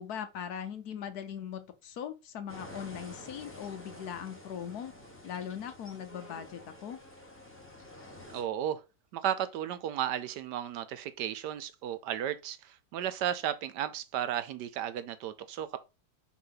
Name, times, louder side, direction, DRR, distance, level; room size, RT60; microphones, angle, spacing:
voice 1, 0.0-4.9 5.2-7.0, left 8 dB, 65° left, 1.2 m, -40 dB
sound 1, 2.5-8.4, left 1 dB, 10° left, 1.1 m, -49 dB
voice 2, 8.3-8.8 9.1-15.8, right 10 dB, 75° right, 1.2 m, -34 dB
6.0 x 3.0 x 5.6 m
omnidirectional pair, 1.9 m